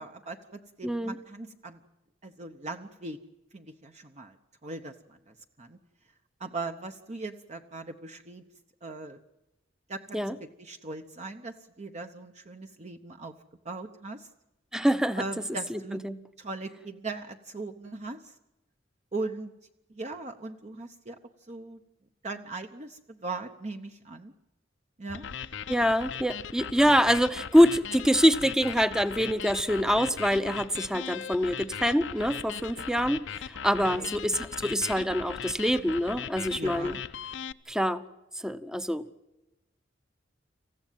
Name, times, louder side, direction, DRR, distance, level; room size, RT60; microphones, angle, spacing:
voice 1, 0.0-1.8 2.2-3.2 3.5-4.4 4.6-5.8 6.4-8.4 8.8-9.2 9.9-10.2 10.6-13.3 13.6-14.3 15.2-16.0 16.4-18.3 19.1-19.5 19.9-21.2 21.5-21.8 22.2-24.3 25.0-25.3 33.8-34.1 36.6-37.0, right 3 dB, 40° right, 6 dB, 0.9 m, -39 dB
voice 2, 0.8-1.2 10.1-10.3 14.7-15.4 15.7-16.2 25.7-37.0 37.7-38.0 38.4-39.0, equal, 5° right, 12 dB, 0.8 m, -25 dB
sound 1, 25.1-37.5, left 7 dB, 75° left, 0.7 m, -39 dB
27.0 x 15.0 x 9.2 m, 0.98 s
head